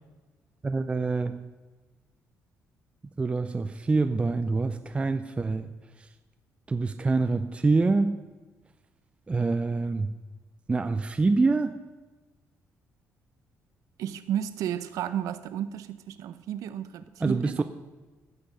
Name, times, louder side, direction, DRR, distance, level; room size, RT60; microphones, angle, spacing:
voice 1, 0.6-1.4 3.2-5.7 6.7-8.2 9.3-10.1 10.7-11.7 17.2-17.6, right 3 dB, 20° right, 8 dB, 0.5 m, -25 dB
voice 2, 14.0-17.6, right 10 dB, 85° right, 12 dB, 0.7 m, -33 dB
16.0 x 6.4 x 4.9 m, 1.2 s
cardioid pair, 115°, 6 cm